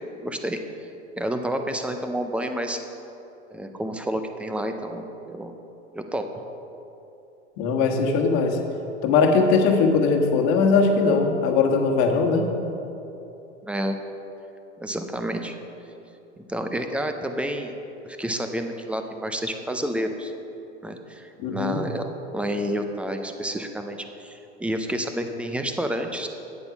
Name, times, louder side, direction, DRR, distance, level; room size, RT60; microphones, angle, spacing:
voice 1, 0.2-0.6 1.2-2.8 3.5-5.5 5.9-6.3 13.6-14.0 14.8-15.6 16.4-17.7 18.0-20.3 20.8-26.3, right 1 dB, 5° right, 6 dB, 0.4 m, -29 dB
voice 2, 7.6-8.6 9.0-12.5 21.4-21.8, left 4 dB, 50° left, 3 dB, 1.4 m, -20 dB
9.0 x 8.1 x 5.8 m, 2.9 s
hypercardioid pair, 120°, 35 cm